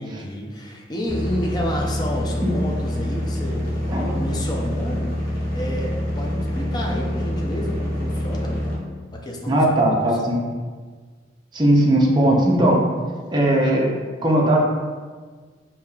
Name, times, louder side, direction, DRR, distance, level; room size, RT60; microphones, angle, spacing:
voice 1, 0.0-3.7 4.0-5.1 5.5-8.8 9.1-10.0, left 1 dB, 20° left, -1 dB, 0.5 m, -30 dB
sound 1, 1.0-8.8, equal, 50° left, 0.8 m, -26 dB
voice 2, 3.9-4.3 9.5-10.4 11.5-12.8 13.3-13.9 14.2-14.6, right 1 dB, 25° right, -2 dB, 0.5 m, -18 dB
4.7 x 2.8 x 2.3 m, 1.5 s
head